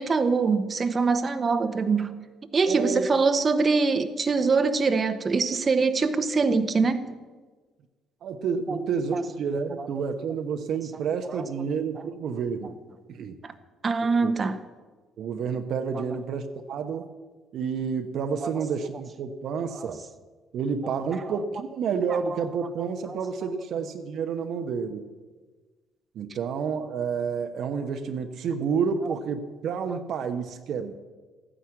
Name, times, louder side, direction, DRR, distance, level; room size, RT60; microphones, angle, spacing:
voice 1, 0.0-2.2 2.5-7.2 8.7-8.8 9.1-9.3 9.8-9.9 11.3-11.4 11.9-12.0 13.4-13.5 13.8-14.6 15.9-16.0 18.4-18.7 19.7-19.9 21.1-21.4 22.1-22.4 23.1-23.2, right 4 dB, 40° right, 10 dB, 1.0 m, -24 dB
voice 2, 2.7-3.1 8.2-12.8 13.1-13.3 14.2-14.5 15.2-17.1 17.5-20.0 20.5-25.1 26.1-30.9, right 6 dB, 60° right, 6 dB, 0.9 m, -29 dB
14.0 x 10.0 x 7.5 m, 1.3 s
hypercardioid pair, 50°, 0 cm